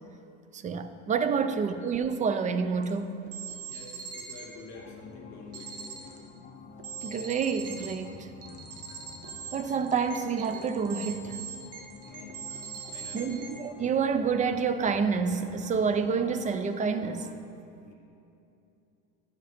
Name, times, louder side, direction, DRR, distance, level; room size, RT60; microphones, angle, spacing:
voice 1, 0.5-3.2 7.0-8.3 9.5-11.4 13.1-17.3, right 5 dB, 20° right, 10 dB, 0.4 m, -28 dB
sound 1, 2.8-2.9 3.3-4.5 5.5-6.2 6.8-8.0 8.4-13.6, right 6 dB, 45° right, 1.2 m, -42 dB
voice 2, 3.7-6.2 12.0-12.4 12.9-13.5 17.8-17.9, left 3 dB, 50° left, -1 dB, 2.4 m, -48 dB
sound 2, 4.7-17.3, left 5 dB, 25° left, 0.8 m, -48 dB
10.5 x 5.9 x 5.0 m, 2.7 s
supercardioid pair, 115°, 35 cm